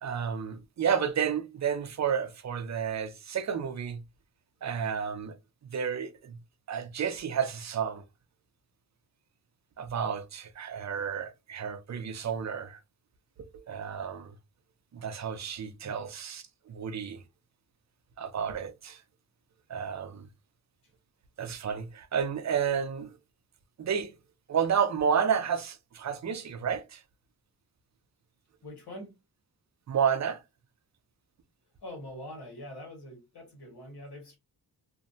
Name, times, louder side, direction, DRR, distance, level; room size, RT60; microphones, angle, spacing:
voice 1, 0.0-4.0 4.6-5.4 5.6-6.4 6.7-8.1 9.8-12.8 13.4-14.3 14.9-17.2 18.2-19.0 19.7-20.3 21.4-23.2 23.8-24.1 24.5-27.0 29.9-30.4, right 7 dB, 45° right, 0.5 m, -31 dB
voice 2, 28.6-29.1 31.8-34.4, left 1 dB, 80° left, 1.4 m, -44 dB
2.6 x 2.0 x 2.6 m
wide cardioid pair, 105°, 39 cm